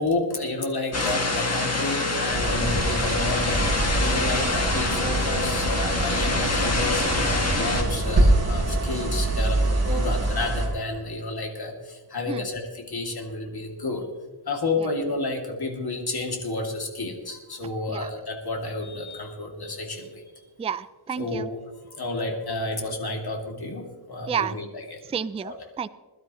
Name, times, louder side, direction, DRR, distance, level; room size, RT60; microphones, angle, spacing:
voice 1, 0.0-3.7 4.0-14.1 14.5-20.2 21.2-21.6 21.9-25.0 25.4-25.6, left 2 dB, 50° left, 2 dB, 2.7 m, -30 dB
sound 1, 0.9-7.8, left 2 dB, 35° left, 2.1 m, -26 dB
sound 2, 2.3-10.7, right 2 dB, 35° right, 3.7 m, -25 dB
voice 2, 20.6-21.5 24.3-24.6 25.1-25.9, right 7 dB, 15° right, 15 dB, 0.3 m, -30 dB
21.5 x 12.0 x 3.1 m, 1.3 s
wide cardioid pair, 90°, 47 cm